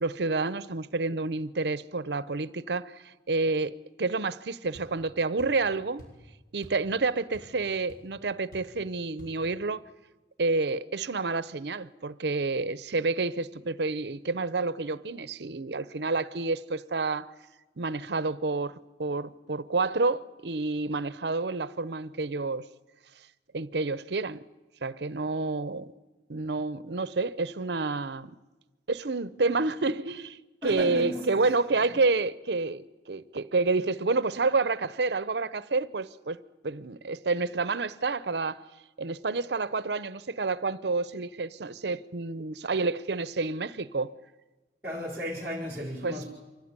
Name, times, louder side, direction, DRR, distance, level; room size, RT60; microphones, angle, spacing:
voice 1, 0.0-3.7 4.0-6.0 6.5-9.8 10.4-17.3 17.8-18.7 19.0-22.7 23.5-24.4 24.8-25.9 26.3-28.3 28.9-36.4 36.6-38.6 39.0-44.1 46.0-46.2, right 3 dB, 75° right, 0.7 m, -29 dB
sound 1, 4.7-4.9 5.4-5.6 6.0-6.2 6.6-6.9 7.1-7.6 7.9-8.0 8.5-8.8 9.2-9.4, equal, 55° left, 6.9 m, -49 dB
voice 2, 30.6-31.2 31.8-31.9 44.8-46.3, left 1 dB, 10° right, 4.4 m, -34 dB
24.5 x 16.5 x 9.7 m
head